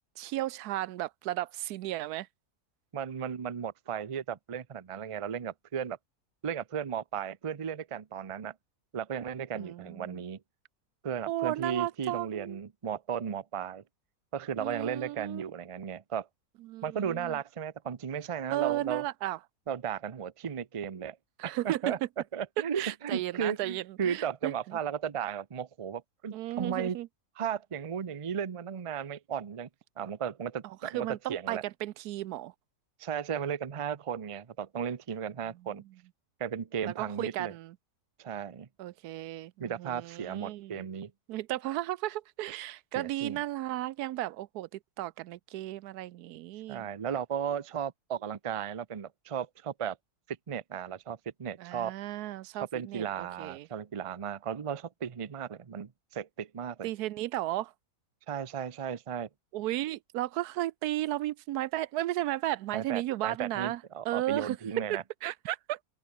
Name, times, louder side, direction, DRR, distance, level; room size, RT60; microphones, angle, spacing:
voice 1, 0.2-2.3 9.5-10.2 11.3-12.6 14.6-15.4 16.6-17.4 18.5-19.4 21.4-22.0 22.8-24.8 26.3-27.1 30.6-32.5 36.8-37.7 38.8-40.8 41.3-46.9 51.6-53.7 56.8-57.7 59.5-64.6 65.2-65.8, right 15 dB, 85° right, 1.1 m, -34 dB
voice 2, 2.9-6.0 6.4-8.5 8.9-10.4 11.0-13.8 14.3-16.3 16.8-19.0 19.7-21.2 21.4-22.0 22.3-27.0 27.4-29.7 30.0-31.6 33.0-35.8 36.4-37.5 38.2-38.7 39.6-41.1 42.9-43.4 46.7-50.0 50.5-51.9 52.6-56.9 58.3-59.3 62.7-65.0, right 8 dB, 40° right, 0.5 m, -35 dB
open air
omnidirectional pair, 1.6 m